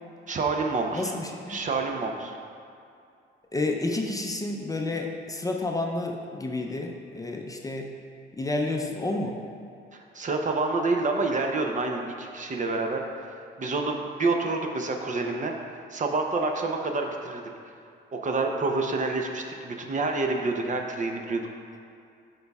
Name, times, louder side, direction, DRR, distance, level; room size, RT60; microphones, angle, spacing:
voice 1, 0.3-1.1 1.5-2.4 9.9-13.3 13.6-15.5 15.9-17.4 18.1-21.4, right 3 dB, 40° right, 3 dB, 0.7 m, -28 dB
voice 2, 0.9-1.6 3.5-7.9 8.4-9.4, left 2 dB, 15° left, 1 dB, 0.5 m, -30 dB
9.3 x 5.3 x 2.3 m, 2.4 s
cardioid pair, 90°, 20 cm